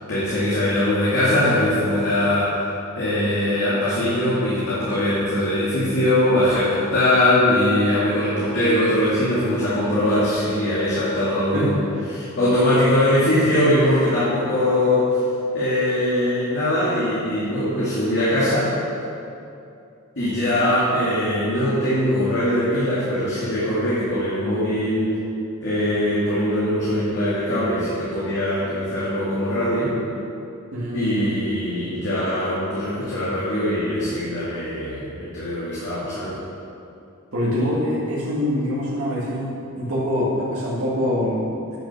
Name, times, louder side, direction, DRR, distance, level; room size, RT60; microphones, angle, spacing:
voice 1, 0.1-11.8 12.1-15.2 15.5-18.7 20.2-25.1 25.6-30.0 30.9-36.4, left 1 dB, 60° left, -10 dB, 2.4 m, -21 dB
voice 2, 30.7-31.4 37.3-41.5, left 1 dB, 80° right, -9 dB, 2.0 m, -24 dB
10.0 x 6.5 x 6.2 m, 2.7 s
head